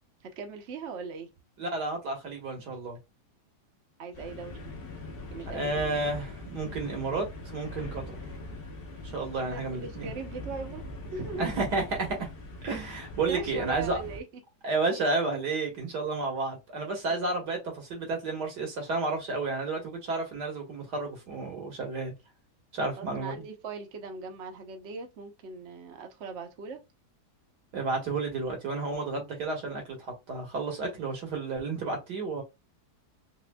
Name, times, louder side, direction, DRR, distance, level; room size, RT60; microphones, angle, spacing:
voice 1, 0.2-1.3 4.0-4.7 5.3-5.9 9.4-11.5 13.3-14.2 17.1-17.4 23.0-26.8, right 4 dB, 55° right, 1.0 m, -39 dB
voice 2, 1.6-3.0 5.5-8.2 9.1-10.1 11.4-12.3 12.6-14.0 14.6-22.1 22.7-23.4 27.7-32.4, right 3 dB, 80° right, 2.1 m, -31 dB
sound 1, 4.1-14.2, left 2 dB, 40° left, 1.1 m, -42 dB
4.2 x 3.1 x 2.2 m
omnidirectional pair, 1.7 m